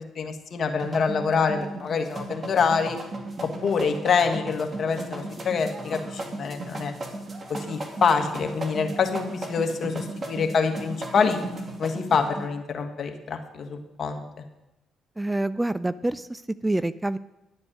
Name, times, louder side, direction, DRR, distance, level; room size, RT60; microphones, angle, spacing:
voice 1, 0.0-3.0 3.6-6.9 7.5-11.4 11.8-14.2, left 5 dB, 55° left, 5 dB, 1.7 m, -26 dB
sound 1, 0.8-12.5, right 2 dB, 40° right, 2.2 m, -36 dB
voice 2, 15.2-17.2, right 1 dB, 15° right, 15 dB, 0.4 m, -27 dB
11.5 x 8.5 x 6.3 m, 0.93 s
supercardioid pair, 65°, 0 cm